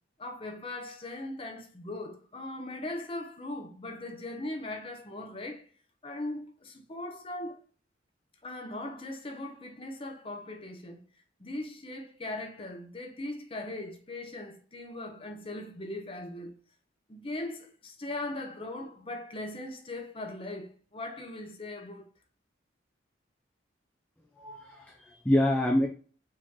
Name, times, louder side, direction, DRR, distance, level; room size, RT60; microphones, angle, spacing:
voice 1, 0.2-5.7 6.0-7.6 8.4-11.0 11.4-16.5 17.1-22.1, left 2 dB, 30° left, 0.8 m, -39 dB
voice 2, 24.4-25.9, left 1 dB, 5° left, 0.5 m, -26 dB
4.9 x 2.9 x 3.7 m
head